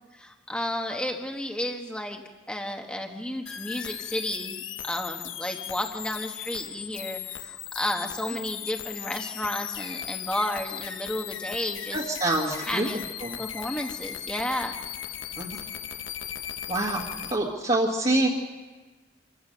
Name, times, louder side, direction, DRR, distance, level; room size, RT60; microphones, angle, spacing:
voice 1, 0.0-2.2 2.5-12.0 12.6-13.0 13.4-14.7 17.1-17.3, left 1 dB, 5° left, 2 dB, 1.2 m, -32 dB
sound 1, 3.5-17.4, left 10 dB, 85° left, 1.1 m, -37 dB
voice 2, 11.9-12.9 13.3-13.4 15.4-15.6 16.7-17.0 17.3-18.3, right 2 dB, 35° right, -4 dB, 1.8 m, -25 dB
26.5 x 15.5 x 6.7 m, 1.2 s
head